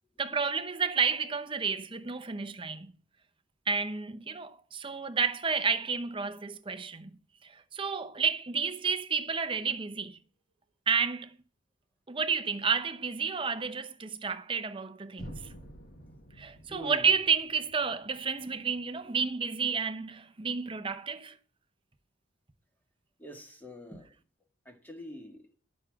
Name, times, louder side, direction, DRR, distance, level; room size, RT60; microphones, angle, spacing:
voice 1, 0.2-2.9 3.7-7.1 7.4-10.2 10.9-11.4 12.1-15.4 16.4-21.4, right 5 dB, 25° right, 0.8 m, -31 dB
sound 1, 15.2-19.1, equal, 50° left, 1.7 m, -49 dB
voice 2, 16.7-17.1 23.2-24.1 24.6-25.5, left 1 dB, 10° left, 1.7 m, -45 dB
11.5 x 6.3 x 5.8 m
head